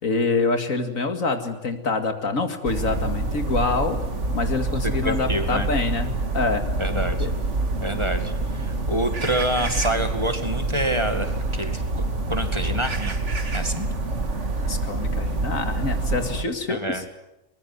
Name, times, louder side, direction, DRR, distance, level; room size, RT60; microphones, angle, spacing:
voice 1, 0.0-4.0 4.3-6.6 7.2-7.3 14.7-17.0, left 3 dB, 80° left, 7 dB, 2.6 m, -26 dB
sound 1, 2.6-16.4, right 2 dB, 60° right, 2.4 m, -26 dB
voice 2, 4.8-5.7 6.8-7.2 7.8-11.3 11.5-13.2 13.5-13.9 16.7-17.0, right 1 dB, 20° right, 7 dB, 2.3 m, -27 dB
23.0 x 21.0 x 9.5 m, 0.91 s
omnidirectional pair, 1.4 m